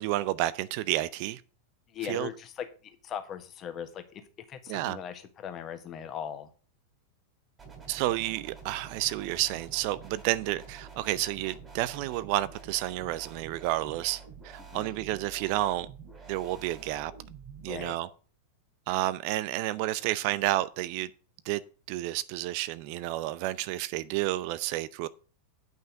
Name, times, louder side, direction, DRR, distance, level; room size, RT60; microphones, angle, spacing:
voice 1, 0.0-1.4 2.0-2.3 4.7-5.0 7.9-15.9 16.3-17.1 17.6-18.1 18.9-21.1 21.4-21.6 21.9-25.1, right 16 dB, 45° right, 0.6 m, -30 dB
voice 2, 1.9-4.2 4.5-6.5 14.6-15.0 17.7-18.0, left 8 dB, 30° left, 1.4 m, -39 dB
sound 1, 7.6-17.9, right 5 dB, 15° right, 3.2 m, -48 dB
9.2 x 5.7 x 6.4 m
figure-of-eight pair, 90°, 0 cm